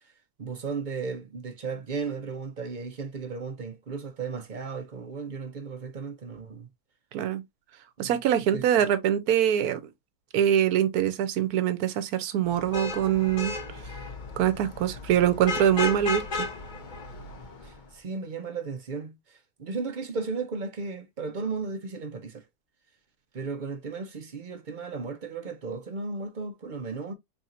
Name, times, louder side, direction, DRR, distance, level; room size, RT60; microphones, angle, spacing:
voice 1, 0.4-6.7 8.0-8.1 8.5-8.6 17.6-22.4 23.3-27.1, right 4 dB, 50° right, 0.6 m, -35 dB
voice 2, 7.1-7.4 8.0-9.8 10.3-13.5 14.4-16.5, right 10 dB, 75° right, 1.2 m, -24 dB
Vehicle horn car horn honking / Traffic noise roadway noise, 12.5-17.8, left 4 dB, 45° left, 0.7 m, -35 dB
4.2 x 3.2 x 2.4 m
omnidirectional pair, 1.7 m